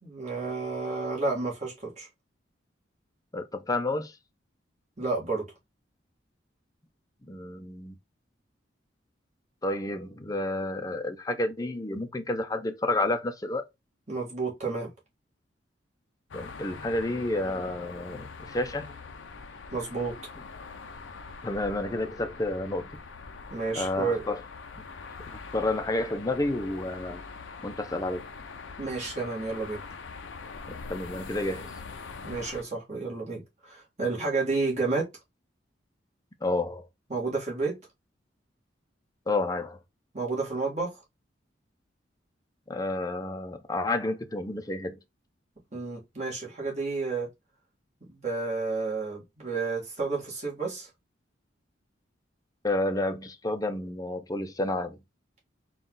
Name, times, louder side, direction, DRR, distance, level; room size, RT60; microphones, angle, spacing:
voice 1, 0.0-2.1 5.0-5.5 14.1-14.9 19.7-20.2 23.5-24.2 28.8-29.8 32.2-35.1 37.1-37.8 40.1-41.0 45.7-47.3 48.0-50.9, right 3 dB, 40° right, 1.7 m, -31 dB
voice 2, 3.3-4.1 7.2-7.9 9.6-13.6 16.3-19.0 21.4-22.9 23.8-24.4 24.8-24.9 25.3-27.2 27.6-28.2 30.7-31.7 36.4-36.9 39.3-39.8 42.7-45.0 52.6-55.0, left 2 dB, 20° left, 0.5 m, -30 dB
sound 1, 16.3-32.6, left 4 dB, 85° left, 0.6 m, -43 dB
3.9 x 2.4 x 3.7 m
head